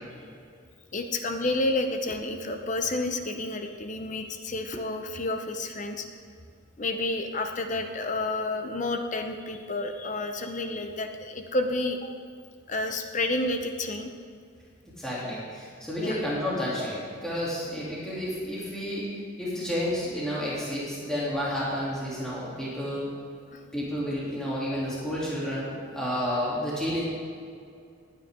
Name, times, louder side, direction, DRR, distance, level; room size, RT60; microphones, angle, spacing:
voice 1, 0.9-6.1 6.8-12.1 12.7-14.1 16.0-16.2 23.5-23.6, left 2 dB, 40° left, 6 dB, 0.7 m, -30 dB
voice 2, 15.0-19.1 19.4-23.1 23.7-27.0, equal, 5° left, -9 dB, 3.0 m, -31 dB
18.5 x 9.8 x 3.8 m, 2.3 s
head